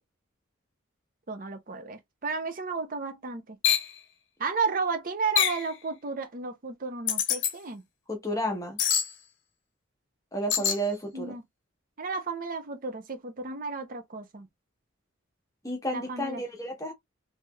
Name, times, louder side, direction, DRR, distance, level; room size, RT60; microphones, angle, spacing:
voice 1, 1.3-3.6 4.4-7.8 10.6-10.8 11.1-11.4 12.0-14.5 15.9-16.4, right 4 dB, 45° right, 0.6 m, -33 dB
sound 1, 3.6-3.9 5.4-5.7 7.1-7.5 8.8-9.1 10.5-10.8, left 8 dB, 65° left, 0.7 m, -25 dB
voice 2, 8.1-8.8 10.3-11.3 15.6-16.9, equal, 15° left, 0.9 m, -31 dB
3.2 x 2.8 x 2.2 m
head